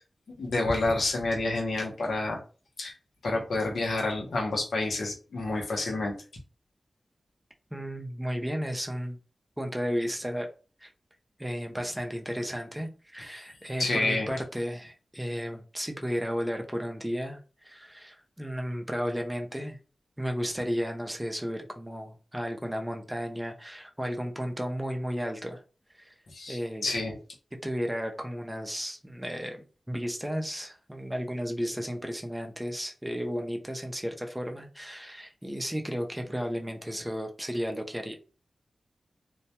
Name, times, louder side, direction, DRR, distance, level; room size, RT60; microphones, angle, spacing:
voice 1, 0.4-2.4 2.8-2.9 3.2-6.1 13.8-14.3 26.3-27.2, left 2 dB, 90° left, 0 dB, 0.6 m, -29 dB
voice 2, 7.7-9.2 9.6-10.5 10.8-10.9 11.4-19.8 20.2-25.6 26.0-26.1 26.5-26.9 27.6-38.1, equal, 10° right, 3 dB, 0.4 m, -33 dB
2.1 x 2.1 x 2.8 m, 0.36 s
wide cardioid pair, 65°, 0 cm